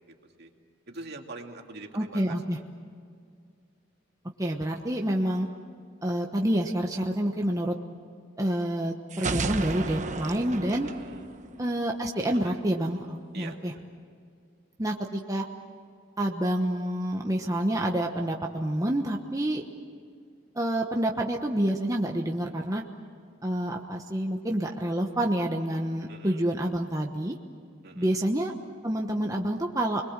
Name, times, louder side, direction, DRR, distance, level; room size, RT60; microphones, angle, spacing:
voice 1, 0.1-0.5 0.9-2.4 10.8-11.3 12.3-12.6 13.3-13.8 26.1-26.4 27.8-28.1, right 3 dB, 55° right, 2 dB, 2.6 m, -44 dB
voice 2, 1.9-2.6 4.4-5.5 6.0-7.8 8.4-10.9 11.6-13.7 14.8-15.5 16.2-19.6 20.5-22.8 23.4-27.4 27.9-28.5 28.8-30.0, right 1 dB, 20° right, 1 dB, 1.2 m, -28 dB
sound 1, 9.1-12.0, right 3 dB, 40° right, 1.0 m, -33 dB
29.5 x 22.0 x 7.4 m, 2.3 s
head